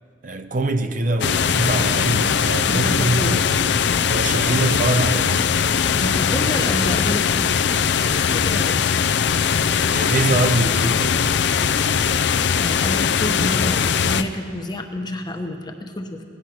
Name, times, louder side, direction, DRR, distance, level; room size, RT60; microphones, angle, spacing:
voice 1, 0.2-3.4 4.1-5.4 9.8-11.2, right 2 dB, 45° right, 0.6 m, -23 dB
sound 1, 1.2-14.2, left 7 dB, 65° left, 0.5 m, -20 dB
voice 2, 2.7-3.4 5.9-7.7 8.3-8.8 12.6-16.2, left 1 dB, 25° left, 0.9 m, -28 dB
17.0 x 10.0 x 6.0 m
head